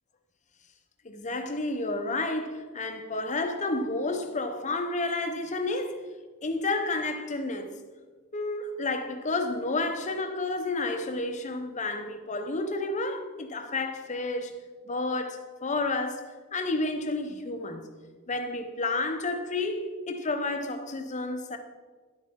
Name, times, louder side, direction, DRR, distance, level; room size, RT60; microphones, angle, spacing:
voice 1, 1.0-6.0 6.4-7.7 8.3-14.5 14.8-17.9 18.3-21.6, left 2 dB, 35° left, 0.8 m, -31 dB
11.0 x 8.5 x 3.6 m
head